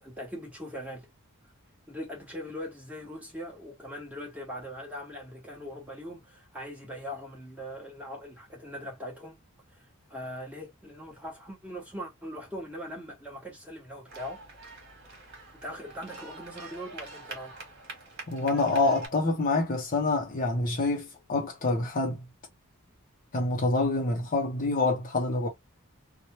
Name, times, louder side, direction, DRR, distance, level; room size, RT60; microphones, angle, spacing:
voice 1, 0.0-1.1 1.9-14.4 15.6-17.5, equal, 5° right, 1.1 m, -41 dB
sound 1, 14.1-19.1, right 3 dB, 50° right, 1.3 m, -43 dB
voice 2, 18.3-22.2 23.3-25.5, left 3 dB, 40° left, 0.6 m, -27 dB
2.9 x 2.1 x 3.0 m
head